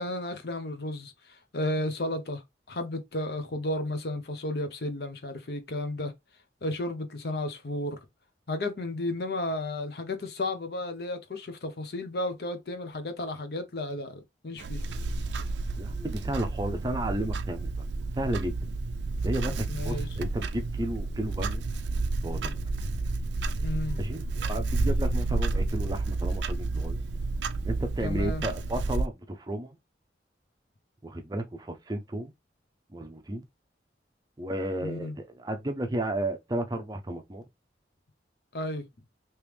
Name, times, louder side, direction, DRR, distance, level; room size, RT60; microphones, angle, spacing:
voice 1, 0.0-2.4 2.7-6.1 6.6-8.0 8.5-14.8 19.7-20.1 23.6-24.0 28.0-28.4 34.8-35.1 38.5-38.9, left 1 dB, 55° left, 0.7 m, -33 dB
Clock, 14.6-29.1, right 3 dB, 75° right, 0.5 m, -30 dB
voice 2, 15.8-17.9 18.2-18.6 19.2-21.6 22.2-22.6 24.0-27.0 27.6-29.8 31.0-32.3 32.9-33.4 34.4-37.4, right 1 dB, 20° right, 0.5 m, -33 dB
3.2 x 3.0 x 3.3 m
head